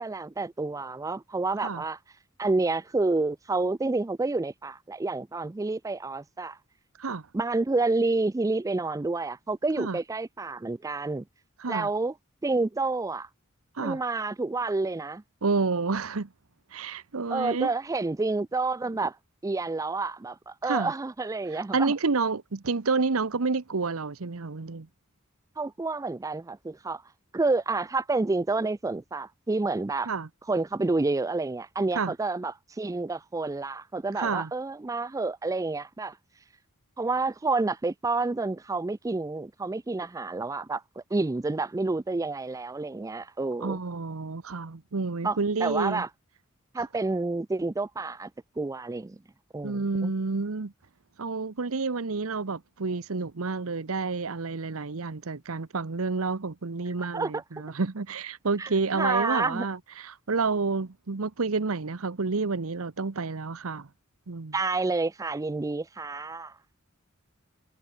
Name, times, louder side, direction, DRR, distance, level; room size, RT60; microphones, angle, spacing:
voice 1, 0.0-2.0 2.4-6.6 7.3-11.2 11.7-12.1 12.4-13.3 13.8-15.2 17.3-19.2 19.4-21.9 25.6-27.0 27.3-30.1 30.5-36.2 37.0-43.8 45.2-46.1 46.7-48.3 48.6-49.2 49.5-50.1 57.1-57.4 58.6-59.7 64.5-66.6, right 3 dB, 15° right, 0.4 m, -29 dB
voice 2, 15.4-16.3 16.7-17.7 20.6-20.9 21.5-24.9 30.1-30.3 31.9-32.1 34.2-34.5 43.6-46.0 49.6-50.7 51.2-63.9 64.3-64.5, right 4 dB, 75° right, 0.9 m, -29 dB
head